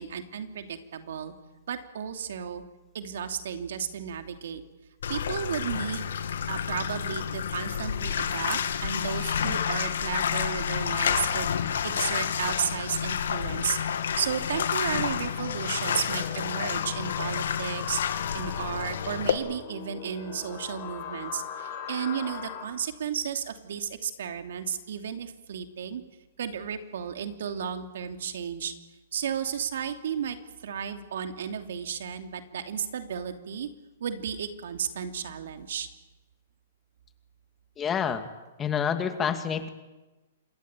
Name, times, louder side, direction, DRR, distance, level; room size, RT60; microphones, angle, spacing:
voice 1, 0.0-1.3 1.7-2.6 2.9-4.6 5.1-6.1 6.5-18.0 18.3-26.0 26.4-28.7 29.1-33.7 34.0-35.9, right 8 dB, 70° right, 6 dB, 2.9 m, -33 dB
Bathtub (filling or washing), 5.0-19.3, left 8 dB, 80° left, 2.6 m, -29 dB
sound 1, 15.4-22.7, left 9 dB, 40° left, 7.3 m, -39 dB
voice 2, 37.8-38.2 38.6-39.7, left 7 dB, 20° left, 8 dB, 2.3 m, -28 dB
27.0 x 21.5 x 9.1 m, 1.1 s
hypercardioid pair, 145°, 0 cm